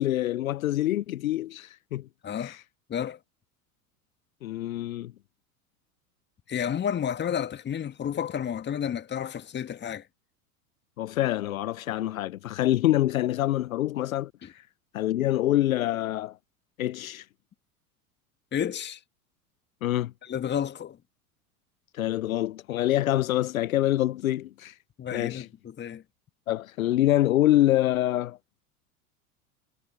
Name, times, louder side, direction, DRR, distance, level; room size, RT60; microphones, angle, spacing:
voice 1, 0.0-2.1 2.4-2.6 4.4-5.1 11.0-14.6 14.9-16.4 16.8-17.3 19.8-20.1 21.9-24.8 25.1-25.5 26.5-28.4, left 14 dB, 65° left, 0.9 m, -26 dB
voice 2, 6.5-10.0 14.4-14.5 18.5-19.0 20.2-21.0 25.0-26.0, left 8 dB, 25° left, 1.9 m, -31 dB
figure-of-eight pair, 85°, 44 cm